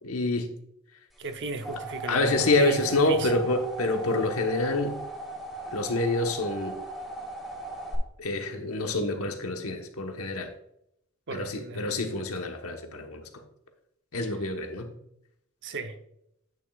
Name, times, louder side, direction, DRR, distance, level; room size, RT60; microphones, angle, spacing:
voice 1, 0.0-0.5 2.1-5.0 5.7-6.8 8.2-10.5 11.3-13.2 14.1-14.9, left 2 dB, 75° left, 1.2 m, -27 dB
sound 1, 1.2-7.9, right 1 dB, ahead, 2.9 m, -38 dB
voice 2, 1.2-3.4 11.3-11.9 15.6-16.0, right 3 dB, 55° right, 0.8 m, -36 dB
9.5 x 9.1 x 2.4 m
head